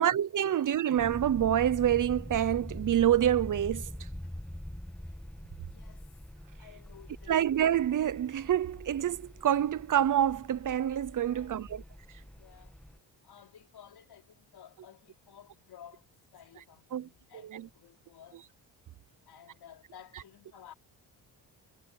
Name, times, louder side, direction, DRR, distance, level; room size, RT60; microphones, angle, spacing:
voice 1, 0.0-4.1 7.3-11.8 16.9-17.1 17.4-17.7, right 11 dB, 50° right, 0.7 m, -27 dB
sound 1, 1.0-13.0, left 1 dB, 5° left, 1.5 m, -44 dB
voice 2, 5.6-6.2 6.6-7.4 11.3-11.9 12.4-12.8 13.2-18.5 19.3-20.7, left 9 dB, 65° left, 4.7 m, -55 dB
cardioid pair, 95°, 40 cm